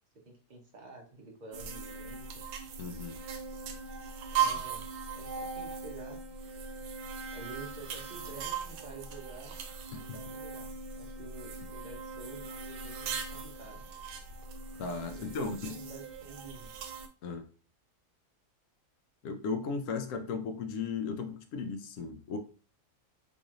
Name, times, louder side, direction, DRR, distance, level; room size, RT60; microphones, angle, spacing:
voice 1, 0.2-2.5 4.3-4.8 5.1-6.2 7.3-9.6 9.9-13.8 15.1-16.7, right 3 dB, 45° right, 0.6 m, -49 dB
sound 1, 1.5-17.1, right 6 dB, 85° right, 1.2 m, -39 dB
voice 2, 2.8-3.2 10.1-10.2 14.8-15.7 17.2-17.5 19.2-22.4, left 5 dB, 70° left, 0.8 m, -36 dB
3.9 x 3.0 x 2.4 m
omnidirectional pair, 1.8 m